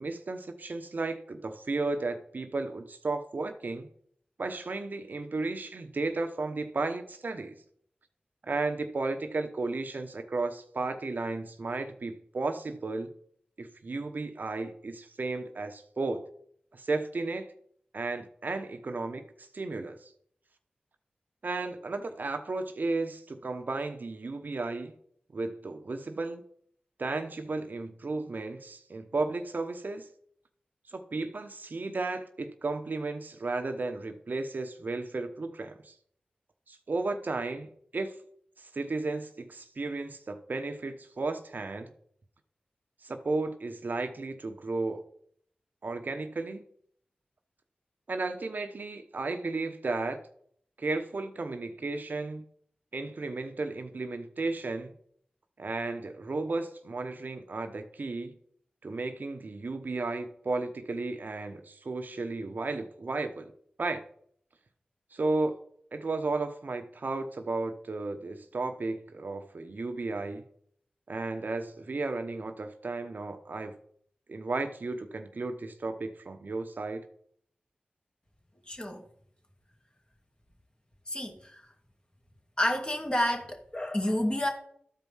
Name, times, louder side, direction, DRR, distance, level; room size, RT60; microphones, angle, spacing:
voice 1, 0.0-3.9 4.4-7.6 8.4-13.1 13.6-16.3 16.7-17.5 17.9-20.1 21.4-24.9 25.3-26.4 27.0-30.1 30.9-35.9 36.7-38.1 38.6-41.9 43.0-45.0 45.8-46.6 48.1-50.2 50.8-52.4 52.9-54.9 55.6-58.3 58.8-63.5 63.8-64.0 65.1-65.6 65.9-70.4 71.1-73.7 74.3-77.0, right 3 dB, 65° right, 1.0 m, -34 dB
voice 2, 78.7-79.0 81.1-81.7 82.6-84.5, left 1 dB, 30° left, 2.4 m, -30 dB
12.5 x 4.7 x 5.6 m
cardioid pair, 40°, 3 cm